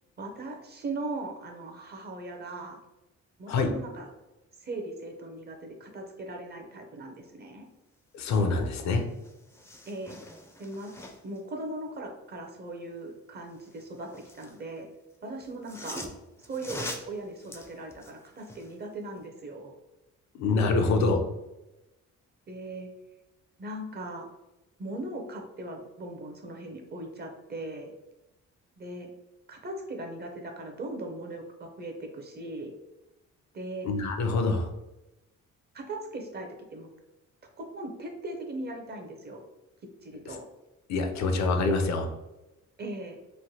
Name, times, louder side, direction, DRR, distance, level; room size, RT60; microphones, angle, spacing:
voice 1, 0.2-2.8 3.4-4.1 4.6-7.6 9.9-10.2 10.6-10.9 11.2-14.1 14.3-14.9 15.2-16.1 16.4-19.7 22.5-22.9 23.6-24.3 24.8-27.9 28.8-29.1 29.5-32.7 33.5-33.9 35.7-36.9 37.6-39.4 40.0-40.4 42.8-43.2, right 2 dB, 35° right, 3 dB, 0.6 m, -39 dB
voice 2, 8.1-9.0 20.3-21.2 33.8-34.7 40.9-42.1, left 3 dB, 65° left, 5 dB, 0.5 m, -25 dB
sound 1, 8.8-8.9 9.1-11.4 13.5-14.6 15.4-18.8 19.2-19.3, left 1 dB, 10° left, 0.4 m, -43 dB
3.1 x 2.1 x 2.7 m, 0.98 s
cardioid pair, 90°, 30 cm